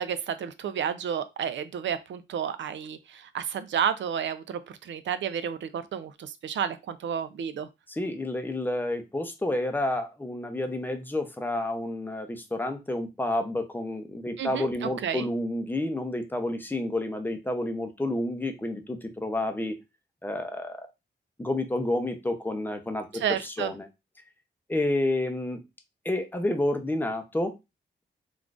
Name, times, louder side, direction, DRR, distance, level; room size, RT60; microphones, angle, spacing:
voice 1, 0.0-7.7 14.4-15.3 23.1-23.7, right 8 dB, 75° right, 0.4 m, -31 dB
voice 2, 7.9-19.8 20.2-20.9 21.4-23.9 24.7-25.6 26.0-27.6, left 1 dB, 10° left, 0.6 m, -30 dB
3.6 x 2.4 x 2.4 m
cardioid pair, 90°, 19 cm